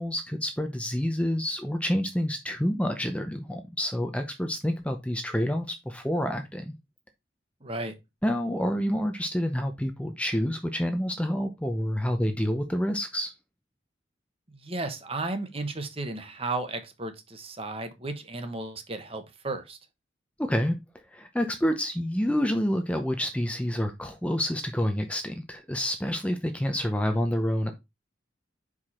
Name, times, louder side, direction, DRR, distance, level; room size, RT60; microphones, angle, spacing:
voice 1, 0.0-6.7 8.2-13.3 20.4-20.8 21.1-27.7, equal, 5° left, 0.6 m, -28 dB
voice 2, 7.6-7.9 14.5-19.8, right 2 dB, 30° right, 1.1 m, -34 dB
5.8 x 4.9 x 4.3 m
head